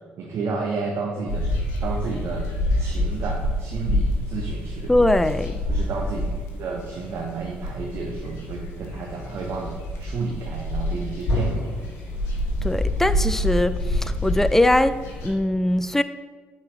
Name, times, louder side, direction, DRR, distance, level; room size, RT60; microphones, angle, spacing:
voice 1, 0.2-1.5 1.8-2.4 2.7-4.9 5.7-11.7, right 4 dB, 50° right, 0 dB, 0.8 m, -31 dB
sound 1, 1.3-15.3, left 1 dB, 60° left, 1.3 m, -27 dB
voice 2, 4.9-5.6 12.6-16.0, left 1 dB, 5° left, 13 dB, 0.3 m, -21 dB
9.3 x 4.2 x 3.1 m, 1.4 s
figure-of-eight pair, 50°, 5 cm